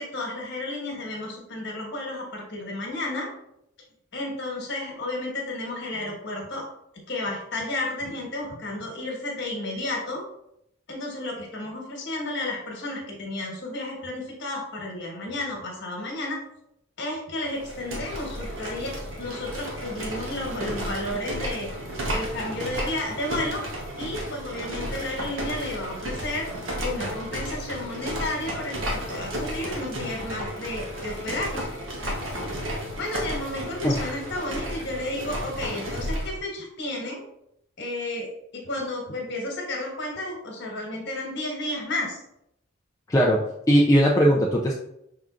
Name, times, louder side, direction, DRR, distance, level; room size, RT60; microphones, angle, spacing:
voice 1, 0.0-3.3 4.1-6.6 7.1-10.2 10.9-16.4 17.0-21.7 22.1-23.6 24.0-26.5 26.8-31.6 33.0-37.2 37.8-42.2, left 1 dB, 60° left, 0 dB, 1.4 m, -32 dB
sound 1, 17.5-36.4, equal, 75° right, 1.0 m, -33 dB
voice 2, 43.1-44.7, equal, 15° left, -3 dB, 0.4 m, -20 dB
5.8 x 3.7 x 2.4 m, 0.78 s
head